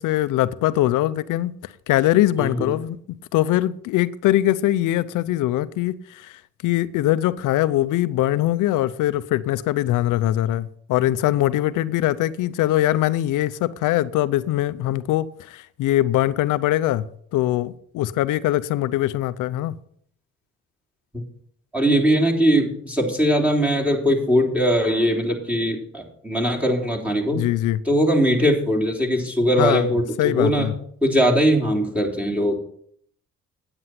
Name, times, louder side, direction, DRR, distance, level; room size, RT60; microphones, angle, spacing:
voice 1, 0.0-1.5 1.9-3.0 3.3-17.1 17.3-19.7 27.3-27.8 29.6-29.9 30.2-30.7, left 14 dB, 90° left, 0.7 m, -22 dB
voice 2, 2.4-2.7 21.1-21.2 21.7-27.4 27.9-30.7 31.0-32.6, equal, 5° right, 3.2 m, -20 dB
9.6 x 8.9 x 5.9 m
cardioid pair, 90°, 30 cm